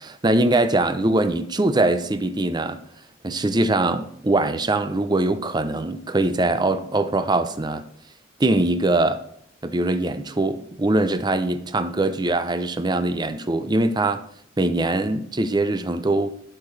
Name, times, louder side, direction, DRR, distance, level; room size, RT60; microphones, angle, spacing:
voice 1, 0.0-2.8 3.2-7.8 8.4-9.2 9.6-14.2 14.6-16.3, right 2 dB, 20° right, 0.5 m, -22 dB
12.0 x 6.6 x 3.3 m
head